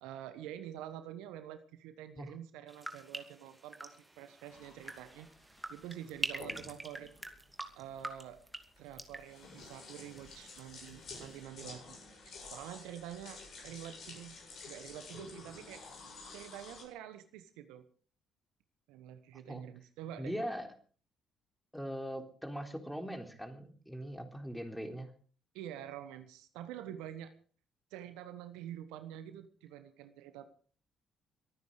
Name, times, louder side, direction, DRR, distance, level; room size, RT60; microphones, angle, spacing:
voice 1, 0.0-5.3 5.7-7.1 7.7-8.4 8.8-12.0 12.2-14.4 14.7-15.8 16.3-17.8 18.9-20.4 25.5-27.3 27.9-30.5, right 11 dB, 75° right, 10 dB, 1.2 m, -47 dB
sound 1, 2.7-10.6 10.9-11.4, right 1 dB, 15° right, 2.6 m, -45 dB
sound 2, 4.5-16.8, left 3 dB, 55° left, 7.7 m, -51 dB
voice 2, 20.2-20.7 21.7-25.1, equal, 5° left, 5 dB, 3.8 m, -40 dB
23.0 x 9.5 x 5.0 m, 0.41 s
hypercardioid pair, 50°, 0 cm